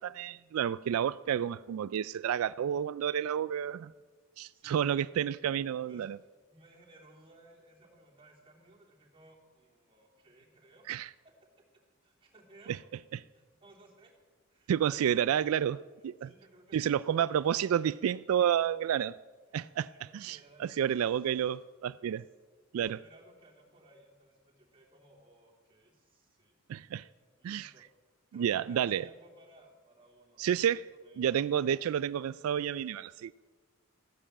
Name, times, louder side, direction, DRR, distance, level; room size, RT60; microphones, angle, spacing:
voice 1, 0.0-3.9 4.4-6.2 10.9-11.1 14.7-16.3 16.7-19.1 19.5-19.9 20.1-22.2 22.7-23.0 26.7-27.1 27.4-27.7 28.3-29.0 30.4-30.8 31.2-33.3, right 9 dB, 85° right, 0.3 m, -30 dB
voice 2, 4.5-4.8 5.9-6.1 6.5-11.1 12.0-12.8 13.3-14.1 14.5-15.5 16.2-18.0 19.8-21.2 22.7-26.6 27.4-27.8 28.3-31.2, right 1 dB, 25° right, 3.1 m, -59 dB
15.0 x 10.0 x 7.4 m
head